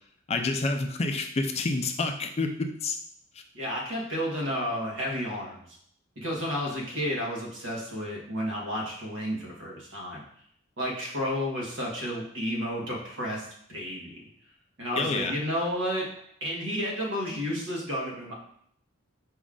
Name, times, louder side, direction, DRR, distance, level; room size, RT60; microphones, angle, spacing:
voice 1, 0.3-3.0 15.0-15.3, left 3 dB, 30° left, 5 dB, 0.4 m, -28 dB
voice 2, 3.5-5.7 6.2-10.2 10.8-14.2 14.8-16.1 16.4-18.3, equal, 65° right, -3 dB, 1.3 m, -31 dB
5.0 x 2.4 x 3.7 m, 0.66 s
head